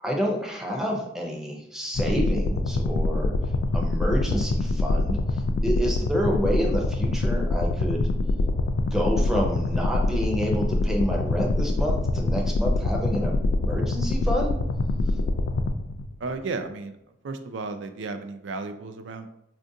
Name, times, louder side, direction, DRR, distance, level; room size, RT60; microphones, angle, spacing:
voice 1, 0.0-3.3 3.7-5.2 5.6-8.1 8.9-14.5, equal, 5° right, -1 dB, 0.5 m, -28 dB
sound 1, 1.9-16.3, left 2 dB, 75° left, 0.3 m, -25 dB
voice 2, 16.2-19.3, right 3 dB, 85° right, 8 dB, 0.4 m, -34 dB
4.4 x 2.5 x 2.6 m, 0.79 s
head